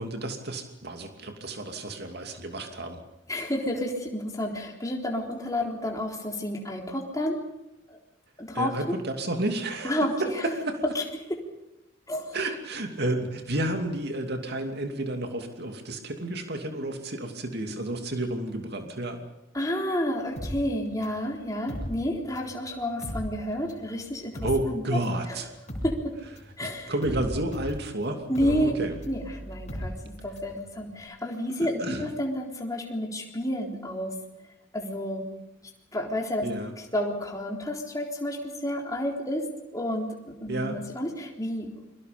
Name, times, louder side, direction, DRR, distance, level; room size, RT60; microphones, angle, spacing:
voice 1, 0.0-3.0 8.5-10.8 12.3-19.2 24.4-25.5 26.6-29.0 31.6-32.1 36.4-36.7 40.5-40.8, right 1 dB, 55° right, 5 dB, 2.7 m, -31 dB
voice 2, 3.3-7.4 7.9-8.0 8.4-9.0 9.8-10.4 11.0-11.1 11.3-11.4 12.1-12.4 19.5-24.8 25.3-25.4 25.8-26.1 26.6-26.9 28.3-28.8 29.1-34.2 34.7-35.2 35.9-36.5 36.9-39.5 39.7-41.9, left 1 dB, 15° left, 0 dB, 3.7 m, -30 dB
sound 1, 20.4-22.6 22.9-30.6 30.9-31.0, equal, 35° left, 7.0 m, -37 dB
29.5 x 23.5 x 5.3 m, 0.91 s
head